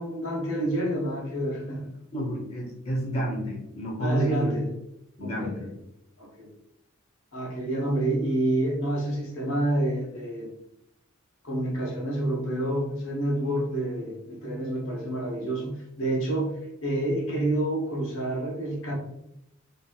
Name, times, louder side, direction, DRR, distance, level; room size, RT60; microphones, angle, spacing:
voice 1, 0.0-1.9 4.0-4.7 5.2-5.6 6.2-6.5 7.3-10.5 11.4-18.9, right 1 dB, 85° left, -2 dB, 0.8 m, -28 dB
voice 2, 2.1-4.5 5.2-5.7, equal, 30° left, -2 dB, 0.8 m, -30 dB
2.9 x 2.6 x 2.2 m, 0.80 s
head